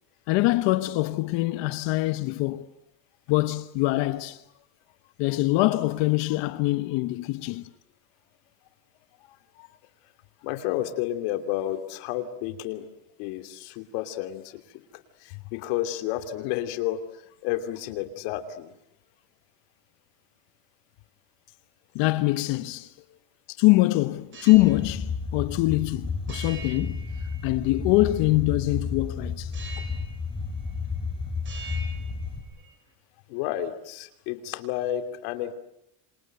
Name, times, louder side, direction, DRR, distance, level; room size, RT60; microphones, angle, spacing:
voice 1, 0.3-2.6 3.3-4.4 5.2-7.6 9.6-9.7 21.9-22.9 23.6-27.0 27.4-29.5, left 19 dB, 65° left, 1.3 m, -23 dB
voice 2, 10.4-12.9 13.2-18.7 23.5-23.6 33.3-35.5, left 12 dB, 80° left, 2.9 m, -31 dB
sound 1, 24.2-24.8 26.3-27.8 29.5-30.2 30.5-31.1 31.4-32.8, right 4 dB, 25° right, 6.6 m, -44 dB
sound 2, 24.6-32.4, left 4 dB, 10° left, 5.0 m, -32 dB
27.5 x 27.0 x 8.0 m
cardioid pair, 160°, 47 cm